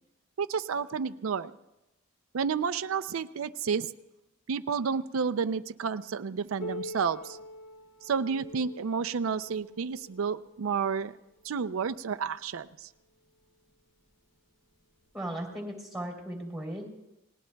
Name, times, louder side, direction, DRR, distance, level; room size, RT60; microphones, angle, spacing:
voice 1, 0.4-1.5 2.3-3.9 4.5-7.4 8.0-11.1 11.4-12.9, right 6 dB, 90° right, 11 dB, 0.5 m, -31 dB
Piano, 6.6-11.9 12.8-12.9 13.4-13.5 14.3-14.4 15.4-15.5, left 1 dB, 65° left, 2.6 m, -45 dB
voice 2, 15.1-16.9, right 1 dB, ahead, 1 dB, 3.2 m, -37 dB
29.5 x 19.0 x 2.3 m, 0.96 s
head